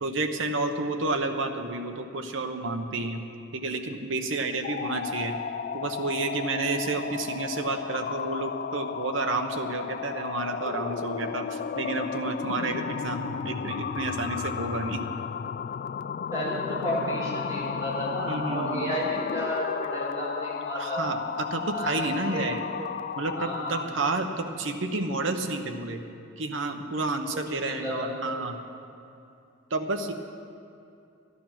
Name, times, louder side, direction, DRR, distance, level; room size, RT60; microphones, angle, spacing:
voice 1, 0.0-3.2 3.5-5.4 5.7-15.0 18.3-18.9 20.7-21.2 21.5-22.6 23.2-26.0 26.4-28.6 29.7-30.1, right 3 dB, 65° right, 5 dB, 1.0 m, -30 dB
sound 1, 4.5-24.0, left 6 dB, 45° left, 0.3 m, -34 dB
voice 2, 16.3-21.0 21.7-22.5 22.8-22.9 23.3-23.8 27.3-28.2, equal, 20° right, -6 dB, 3.9 m, -32 dB
12.5 x 11.5 x 5.9 m, 2.6 s
head